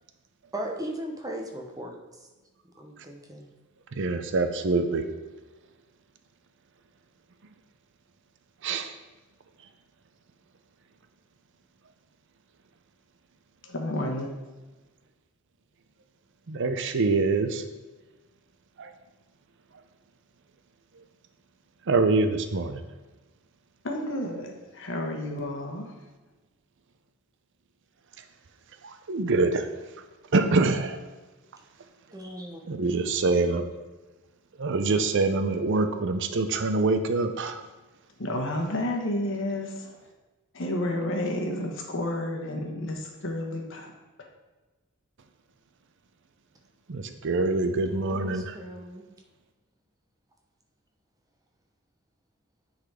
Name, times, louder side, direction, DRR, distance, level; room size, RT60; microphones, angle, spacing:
voice 1, 0.5-2.0 2.8-3.5 32.1-32.6 47.8-49.1, right 1 dB, 15° right, 2 dB, 0.9 m, -37 dB
voice 2, 3.9-5.0 8.6-8.9 16.5-17.6 18.8-18.9 21.9-22.8 28.8-29.7 30.3-31.0 32.7-33.7 34.6-37.7 46.9-48.6, right 3 dB, 55° right, 8 dB, 0.6 m, -25 dB
voice 3, 13.6-14.3 23.8-26.0 38.2-40.0 40.5-43.9 44.2-44.3, left 1 dB, 60° left, 2 dB, 1.2 m, -31 dB
9.4 x 4.1 x 4.9 m, 1.2 s
head